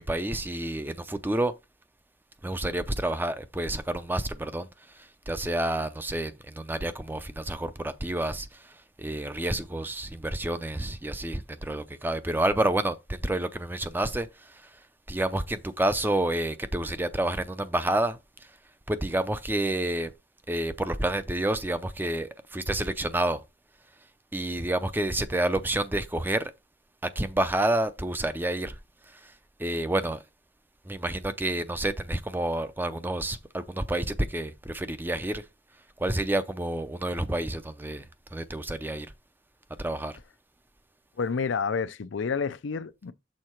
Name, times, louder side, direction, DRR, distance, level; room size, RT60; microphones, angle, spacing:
voice 1, 0.0-1.5 2.4-4.7 4.9-14.7 15.1-18.2 18.9-20.1 20.5-23.4 24.3-26.5 27.0-28.8 29.1-29.3 29.6-30.2 30.9-35.4 36.0-38.0 38.3-39.1 39.8-40.2, right 1 dB, 10° right, 0.5 m, -29 dB
voice 2, 41.2-43.1, left 5 dB, 90° left, 0.5 m, -29 dB
6.5 x 3.8 x 4.4 m
head